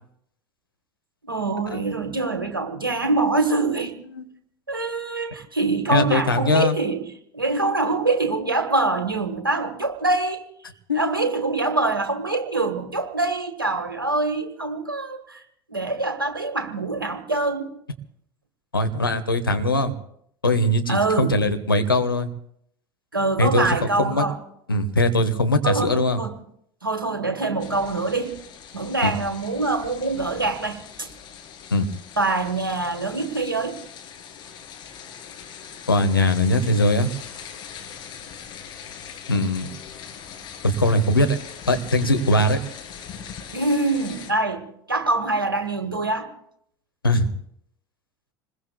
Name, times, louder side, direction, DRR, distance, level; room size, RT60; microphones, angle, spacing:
voice 1, 1.3-4.0 4.7-7.0 7.3-10.4 10.9-15.4 15.7-17.7 20.9-21.3 23.1-24.4 25.6-26.3 26.8-28.4 28.7-31.1 32.2-33.8 43.5-46.3, right 3 dB, 85° right, 7 dB, 1.4 m, -24 dB
voice 2, 5.9-6.8 10.9-11.3 18.7-19.9 20.4-22.3 23.4-24.3 24.7-26.2 29.0-29.1 31.7-31.9 35.9-37.1 39.3-39.7 40.6-41.4 41.7-42.6 47.0-47.3, left 1 dB, 85° left, 7 dB, 1.1 m, -21 dB
sound 1, 27.6-44.3, left 7 dB, 40° left, 2.2 m, -41 dB
27.0 x 20.5 x 2.3 m, 0.70 s
figure-of-eight pair, 70°, 11 cm